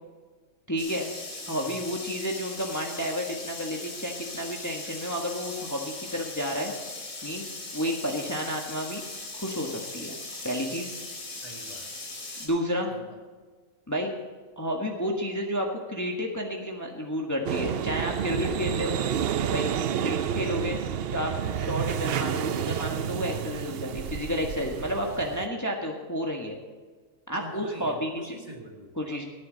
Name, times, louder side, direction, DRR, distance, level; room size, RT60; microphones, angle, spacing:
voice 1, 0.7-1.1 1.5-6.7 7.2-9.0 9.3-10.2 10.4-10.9 12.4-12.9 13.9-14.1 14.6-19.0 19.5-19.6 20.0-20.8 21.1-26.6 27.3-28.1 29.0-29.2, equal, 15° left, 0 dB, 1.5 m, -31 dB
sound 1, 0.8-12.5, left 2 dB, 85° left, 3.4 m, -39 dB
voice 2, 11.4-11.9 12.9-13.2 25.1-25.3 27.3-29.3, right 1 dB, 25° right, 0 dB, 2.2 m, -44 dB
sound 2, 17.5-25.5, right 8 dB, 60° right, 0.7 m, -30 dB
18.0 x 9.7 x 4.0 m, 1.4 s
omnidirectional pair, 1.4 m